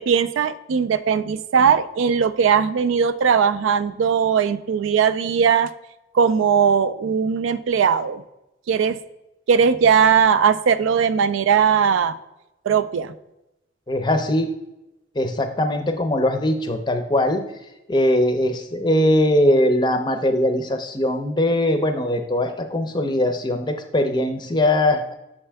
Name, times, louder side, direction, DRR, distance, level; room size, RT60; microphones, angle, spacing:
voice 1, 0.0-5.7 6.1-8.2 8.7-9.0 9.5-12.2 12.7-13.1, right 6 dB, 90° right, 13 dB, 0.4 m, -19 dB
voice 2, 13.9-14.5 15.2-17.4 17.9-25.1, left 1 dB, 25° left, 7 dB, 0.5 m, -21 dB
6.6 x 4.4 x 3.4 m, 0.93 s
head